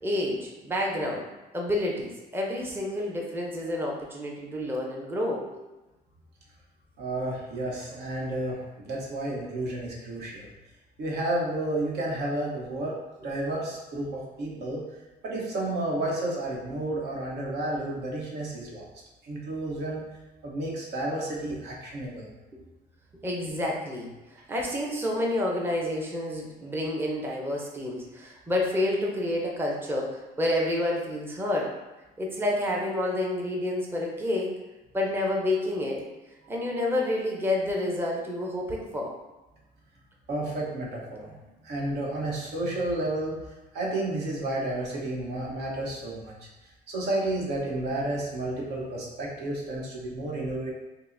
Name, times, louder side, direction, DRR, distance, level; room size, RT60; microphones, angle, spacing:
voice 1, 0.0-1.3 1.5-5.6 14.5-14.6 23.2-31.7 32.2-34.5 34.9-36.0 36.5-39.1, left 1 dB, 15° right, -1 dB, 0.6 m, -29 dB
voice 2, 7.0-10.5 11.0-12.9 13.2-14.8 15.2-18.8 19.2-20.0 20.4-22.3 40.3-41.4 41.6-43.4 43.7-46.3 46.9-50.7, right 1 dB, 75° right, -3 dB, 1.0 m, -31 dB
5.4 x 2.0 x 2.6 m, 1.1 s
cardioid pair, 110°, 17 cm